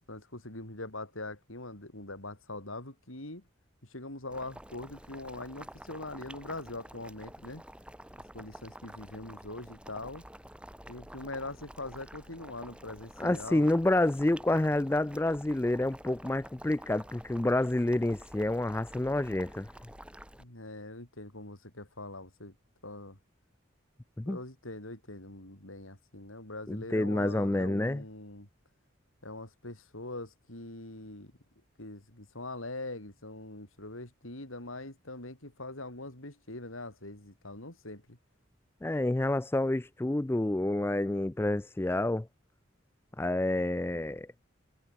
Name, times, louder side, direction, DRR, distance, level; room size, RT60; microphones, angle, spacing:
voice 1, 0.1-3.5 3.9-7.6 8.3-10.2 10.9-13.7 20.4-22.5 22.8-23.2 24.3-28.5 29.2-31.3 31.8-38.2, left 2 dB, 90° left, 6.2 m, -42 dB
Boiling, 4.3-20.4, right 1 dB, 5° right, 4.3 m, -49 dB
voice 2, 13.2-19.7 24.2-24.4 26.7-28.0 38.8-42.3 43.2-44.3, left 1 dB, 10° left, 0.3 m, -28 dB
head